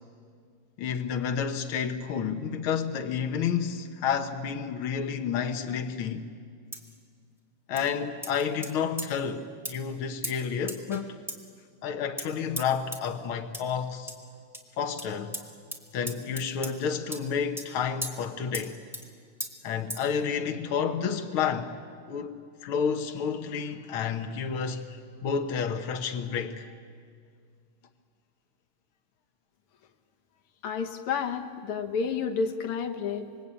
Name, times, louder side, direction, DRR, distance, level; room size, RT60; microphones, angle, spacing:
voice 1, 0.8-6.2 7.7-11.1 11.8-14.1 14.8-15.4 15.9-18.8 19.6-21.7 22.1-26.7, left 7 dB, 75° left, 2.0 m, -30 dB
sound 1, 6.7-7.0 7.8-7.9 8.2-8.7 9.0-9.1 9.7-9.8 10.2-10.4 10.7-11.0 11.3-11.4 12.2-12.3 12.6-12.7 12.9-13.0 13.5-13.6 14.1-14.2 14.5-14.6 15.0-15.1 15.3-15.4 15.7-15.8 16.1-16.7 17.1-17.2 17.6-17.7 18.0-18.1 18.5-18.7 18.9-19.1 19.4-19.5 19.9-20.1, equal, ahead, 2.0 m, -36 dB
voice 2, 30.6-33.5, left 6 dB, 90° left, 2.2 m, -30 dB
26.0 x 22.0 x 8.8 m
omnidirectional pair, 2.4 m